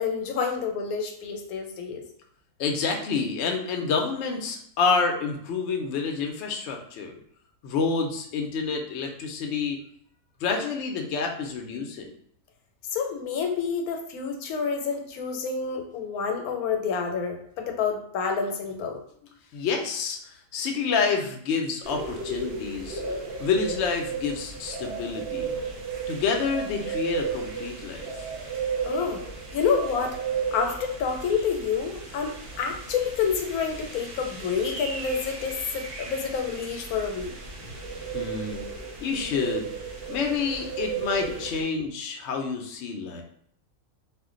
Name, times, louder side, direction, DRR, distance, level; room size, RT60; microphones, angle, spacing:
voice 1, 0.0-2.0 12.9-19.0 28.8-29.2 29.5-30.2 30.5-37.3 37.6-37.7, left 6 dB, 85° left, 4 dB, 1.0 m, -28 dB
voice 2, 2.6-7.2 7.6-9.8 10.4-12.1 19.5-25.5 26.1-28.3 38.1-38.6 39.0-39.7 40.1-43.2, left 5 dB, 65° left, 3 dB, 0.7 m, -28 dB
sound 1, 21.8-41.6, right 5 dB, 55° right, 0.8 m, -35 dB
2.4 x 2.1 x 3.6 m, 0.64 s
omnidirectional pair, 1.5 m